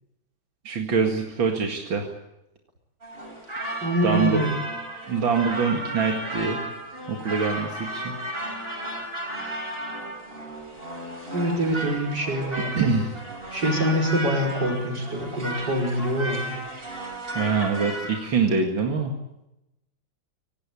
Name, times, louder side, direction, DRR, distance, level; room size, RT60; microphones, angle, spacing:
voice 1, 0.6-2.1 4.0-4.5 5.1-6.7 7.1-8.1 11.8-11.9 12.7-13.1 17.3-19.1, right 5 dB, 90° right, 2 dB, 2.8 m, -24 dB
sound 1, 3.0-18.2, right 1 dB, 25° right, 7.0 m, -34 dB
voice 2, 3.8-4.6 11.3-12.9 13.5-16.5, equal, 60° right, 1 dB, 5.9 m, -25 dB
26.0 x 18.5 x 8.5 m, 0.91 s
omnidirectional pair, 2.1 m